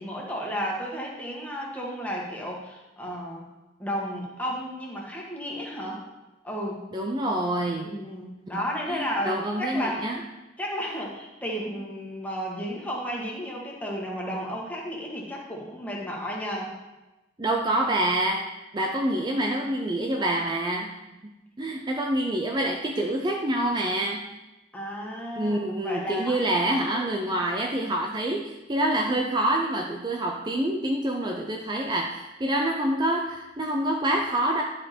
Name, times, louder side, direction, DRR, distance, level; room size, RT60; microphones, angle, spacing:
voice 1, 0.0-3.4 3.8-6.0 6.4-6.9 7.8-10.1 10.6-16.7 24.7-27.0, equal, 10° left, -3 dB, 1.6 m, -33 dB
voice 2, 6.9-7.9 8.5-10.2 17.4-18.5 18.7-20.9 21.6-24.2 25.4-34.6, right 1 dB, 25° right, 1 dB, 0.5 m, -26 dB
10.5 x 5.1 x 4.4 m, 1.0 s
head